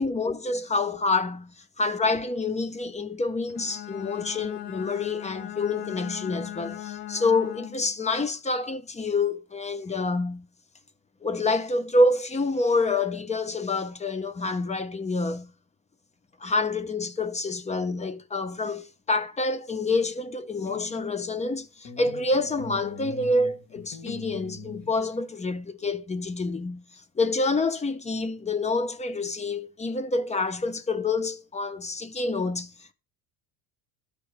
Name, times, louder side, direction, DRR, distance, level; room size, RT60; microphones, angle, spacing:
voice 1, 0.0-10.5 11.2-15.5 16.4-26.8 27.2-32.7, left 3 dB, 15° left, 0.7 m, -27 dB
Bowed string instrument, 3.5-8.0, left 13 dB, 60° left, 0.7 m, -38 dB
sound 1, 20.5-21.6 21.8-25.4, left 5 dB, 40° left, 2.0 m, -42 dB
12.5 x 4.5 x 4.8 m
cardioid pair, 120°, 44 cm